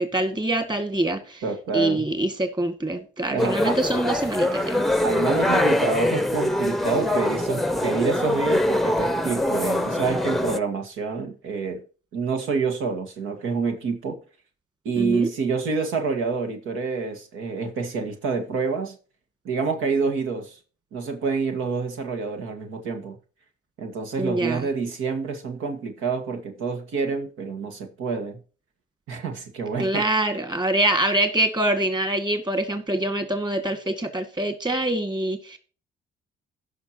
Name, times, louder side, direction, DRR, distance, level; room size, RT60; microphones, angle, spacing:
voice 1, 0.0-1.4 1.7-4.8 15.0-15.3 24.2-24.7 29.8-35.6, right 1 dB, 20° right, 2.1 m, -25 dB
voice 2, 1.4-2.0 3.3-3.8 5.0-11.8 12.1-14.2 14.9-19.0 19.5-20.6 20.9-23.2 23.8-28.4 29.1-30.0, right 4 dB, 90° right, 1.8 m, -27 dB
sound 1, 3.4-10.6, left 1 dB, ahead, 0.7 m, -23 dB
16.0 x 5.9 x 2.9 m
cardioid pair, 90°, 20 cm